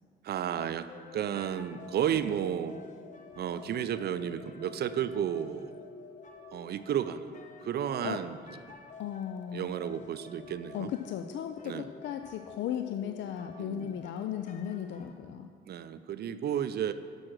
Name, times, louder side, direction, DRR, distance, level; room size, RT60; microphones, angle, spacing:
voice 1, 0.2-2.8 3.4-5.8 6.5-7.3 7.6-8.4 9.5-10.9 11.6-11.9 13.6-14.0 15.7-16.9, right 9 dB, 55° right, 12 dB, 0.4 m, -32 dB
sound 1, 0.9-15.1, left 4 dB, 40° left, 0.8 m, -50 dB
voice 2, 9.0-9.7 10.7-15.5, left 10 dB, 65° left, 7 dB, 0.4 m, -36 dB
6.5 x 6.1 x 6.2 m, 2.2 s
cardioid pair, 90°, 20 cm